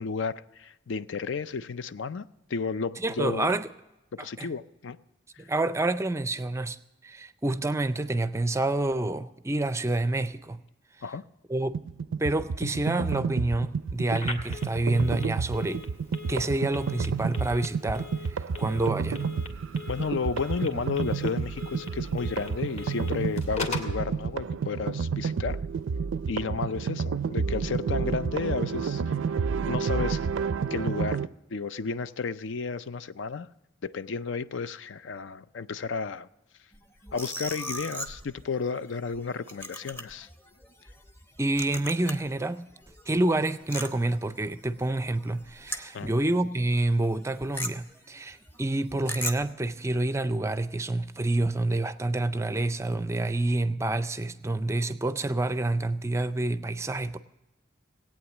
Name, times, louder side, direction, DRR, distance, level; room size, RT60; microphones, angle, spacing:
voice 1, 0.0-3.5 4.1-5.0 5.3-5.5 11.0-11.2 19.9-25.6 26.3-29.2 29.7-30.3 30.7-31.2 31.5-33.5 33.8-36.3 37.1-40.3 45.9-46.1, left 5 dB, 70° left, 0.5 m, -32 dB
voice 2, 3.0-3.7 4.2-4.5 5.4-6.8 7.0-10.6 11.5-11.7 12.1-15.8 16.3-19.2 41.4-42.7 43.1-57.2, right 2 dB, 15° right, 0.4 m, -28 dB
sound 1, 11.7-31.3, right 5 dB, 85° right, 0.4 m, -30 dB
Telephone, 14.1-24.0, left 4 dB, 35° left, 1.7 m, -41 dB
sound 2, 36.7-42.4 42.7-46.3 46.6-46.8 47.0-49.5, equal, 10° left, 0.8 m, -39 dB
17.5 x 8.8 x 7.2 m
head